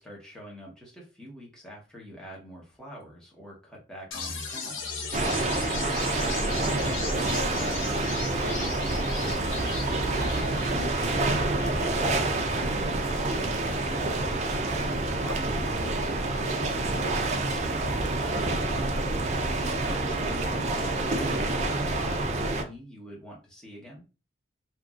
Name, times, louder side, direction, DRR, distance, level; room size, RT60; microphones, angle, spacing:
voice 1, 0.0-5.0 5.5-8.8 14.8-18.5 19.8-24.1, equal, 5° left, -4 dB, 0.9 m, -45 dB
sound 1, 4.1-18.1, left 4 dB, 70° left, 0.7 m, -39 dB
sound 2, 5.1-22.6, right 2 dB, 35° right, 0.4 m, -28 dB
2.9 x 2.6 x 2.4 m, 0.32 s
head